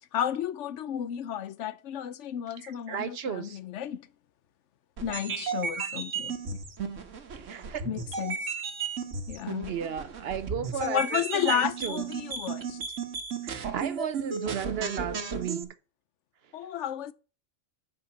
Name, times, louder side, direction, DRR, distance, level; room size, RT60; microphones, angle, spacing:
voice 1, 0.1-4.1 5.0-6.6 7.9-8.6 9.3-9.7 10.8-12.8 16.5-17.1, left 10 dB, 75° left, 0.9 m, -32 dB
voice 2, 2.6-3.6 5.8-5.9 7.3-7.9 9.7-12.1 13.4-15.7, right 8 dB, 60° right, 0.8 m, -34 dB
sound 1, 5.0-15.6, right 5 dB, 90° right, 1.5 m, -34 dB
8.5 x 5.1 x 7.2 m
omnidirectional pair, 1.3 m